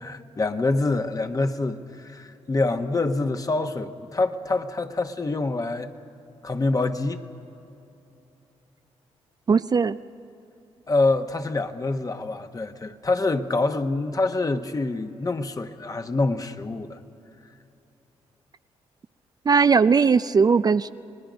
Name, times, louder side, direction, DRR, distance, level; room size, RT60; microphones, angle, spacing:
voice 1, 0.0-5.9 6.4-7.2 10.9-17.0, left 3 dB, 30° left, 7 dB, 1.2 m, -26 dB
voice 2, 9.5-10.0 19.5-20.9, right 5 dB, 35° right, 12 dB, 0.4 m, -19 dB
29.0 x 20.0 x 5.2 m, 2.8 s
cardioid pair, 65°, 11 cm